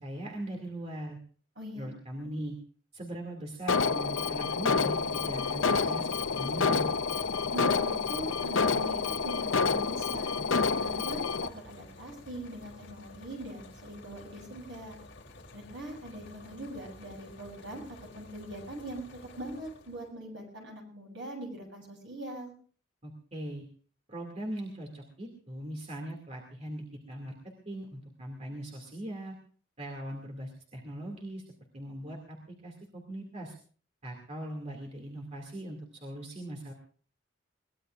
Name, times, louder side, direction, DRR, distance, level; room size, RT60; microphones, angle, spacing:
voice 1, 0.0-1.2 1.7-2.6 2.9-6.9 23.0-23.6 24.1-27.4 27.7-29.3 29.8-31.4 31.7-32.4 32.6-33.5 34.0-36.7, right 1 dB, 35° right, 0 dB, 2.4 m, -40 dB
voice 2, 1.6-1.9 7.5-10.4 10.8-15.0 15.5-17.8 18.1-19.1 19.4-22.5, right 1 dB, 65° right, 0 dB, 7.9 m, -42 dB
Alarm, 3.7-11.5, left 4 dB, 80° left, 0.7 m, -28 dB
sound 1, 4.4-20.1, left 2 dB, 60° left, 3.4 m, -51 dB
22.5 x 19.5 x 2.5 m, 0.43 s
head